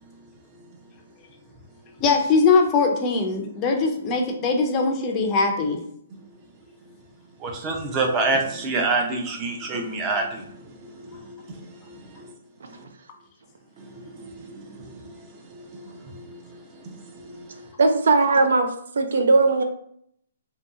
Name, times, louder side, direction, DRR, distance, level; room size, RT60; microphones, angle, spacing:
voice 1, 2.0-5.8, left 4 dB, 25° left, 2 dB, 0.5 m, -21 dB
voice 2, 7.4-11.6 11.9-12.3 13.8-17.7, right 3 dB, 20° right, 2 dB, 0.6 m, -29 dB
voice 3, 17.8-18.7 19.0-19.6, right 3 dB, 70° right, 5 dB, 0.5 m, -18 dB
3.0 x 2.8 x 3.6 m, 0.68 s
hypercardioid pair, 155°, 0 cm